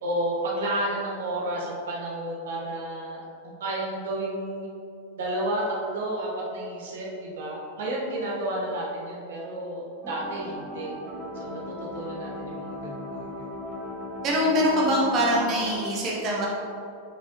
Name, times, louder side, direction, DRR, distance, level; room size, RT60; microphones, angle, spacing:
voice 1, 0.0-4.7 5.2-10.9 11.4-11.6 11.9-13.5, right 1 dB, 60° right, -3 dB, 1.3 m, -31 dB
sound 1, 10.0-15.7, left 1 dB, 15° right, 1.6 m, -37 dB
voice 2, 14.2-16.5, equal, 35° right, -3 dB, 1.2 m, -23 dB
8.5 x 6.0 x 3.0 m, 2.7 s
figure-of-eight pair, 90°, 0 cm